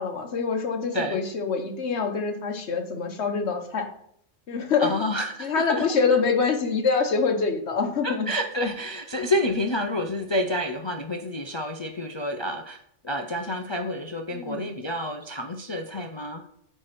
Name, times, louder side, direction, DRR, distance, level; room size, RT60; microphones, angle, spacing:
voice 1, 0.0-3.9 4.5-4.9 5.4-8.3 14.3-14.7, left 5 dB, 60° left, 4 dB, 1.4 m, -25 dB
voice 2, 0.9-1.2 4.8-5.8 8.0-12.8 13.0-16.5, left 1 dB, 40° left, 2 dB, 0.3 m, -29 dB
8.9 x 3.3 x 5.9 m, 0.71 s
omnidirectional pair, 1.3 m